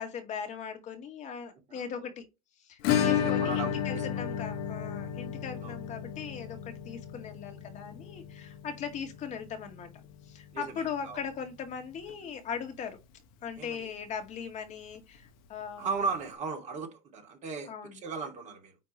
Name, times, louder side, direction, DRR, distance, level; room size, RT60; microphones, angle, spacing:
voice 1, 0.0-2.3 2.6-13.0 13.4-15.9 17.7-18.0, left 7 dB, 45° left, 2.2 m, -39 dB
Acoustic guitar / Strum, 2.8-11.4 11.7-11.8 12.1-12.2 12.6-12.7 14.7-14.8 15.9-16.0, left 9 dB, 60° left, 1.3 m, -33 dB
voice 2, 3.1-4.1 5.6-5.8 10.5-11.2 13.6-13.9 15.8-18.8, right 5 dB, 45° right, 2.8 m, -36 dB
9.4 x 3.6 x 3.2 m
hypercardioid pair, 80°, 17 cm